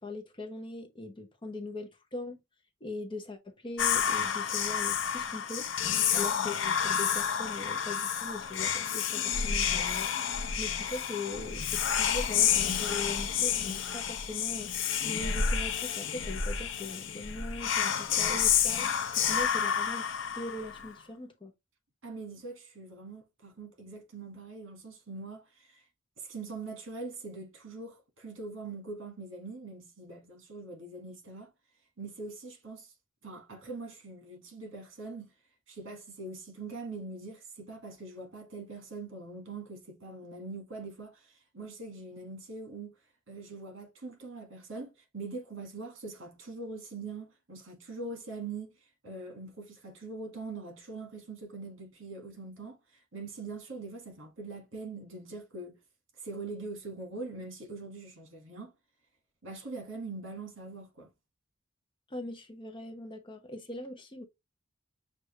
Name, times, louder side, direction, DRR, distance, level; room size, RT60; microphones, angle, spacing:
voice 1, 0.0-2.4 2.8-5.7 6.1-10.1 10.6-14.7 15.0-18.9 19.3-20.0 20.3-21.5 62.1-64.2, left 2 dB, 25° left, 0.8 m, -40 dB
Whispering, 3.8-20.9, left 8 dB, 65° left, 0.6 m, -30 dB
voice 2, 22.0-25.8 26.2-31.5 32.0-32.9 33.2-35.3 35.7-42.9 43.3-48.7 49.0-55.8 56.2-58.7 59.4-61.1, right 3 dB, 70° right, 1.7 m, -43 dB
6.3 x 2.5 x 3.1 m
head